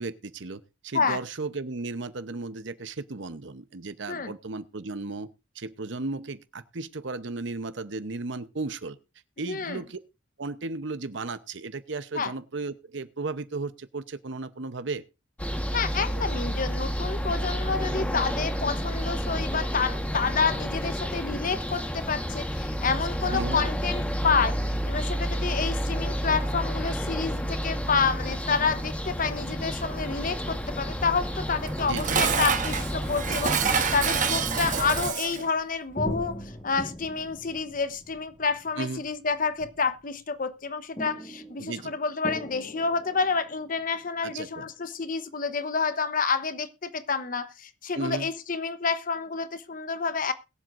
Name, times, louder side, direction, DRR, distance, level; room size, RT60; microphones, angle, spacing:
voice 1, 0.0-5.3 5.5-9.0 9.4-10.0 10.4-15.0 23.3-23.6 31.8-32.2 38.8-39.1 41.6-42.0 44.2-44.7 47.9-48.3, right 3 dB, 70° right, 0.8 m, -35 dB
voice 2, 9.5-9.8 12.1-12.3 15.7-24.6 24.9-50.3, left 5 dB, 45° left, 0.9 m, -29 dB
sound 1, 15.4-35.1, equal, 5° left, 1.3 m, -30 dB
Dishes pots and pans, 31.6-35.5, right 6 dB, 40° right, 1.1 m, -27 dB
sound 2, 36.0-40.1 41.0-44.3 44.7-44.8, equal, 25° left, 1.6 m, -40 dB
21.5 x 7.7 x 2.6 m
head